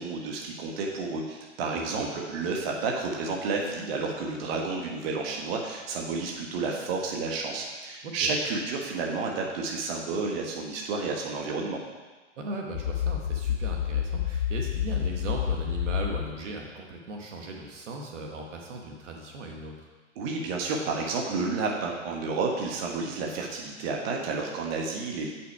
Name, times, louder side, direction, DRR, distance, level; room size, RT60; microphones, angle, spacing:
voice 1, 0.0-11.8 20.2-25.3, right 4 dB, 50° right, 0 dB, 1.5 m, -31 dB
voice 2, 1.7-2.1 8.0-8.3 12.4-19.9, right 2 dB, 70° right, 1 dB, 1.5 m, -38 dB
sound 1, 12.7-16.3, left 9 dB, 85° left, 0.7 m, -29 dB
8.2 x 6.0 x 4.8 m, 1.3 s
hypercardioid pair, 130°, 38 cm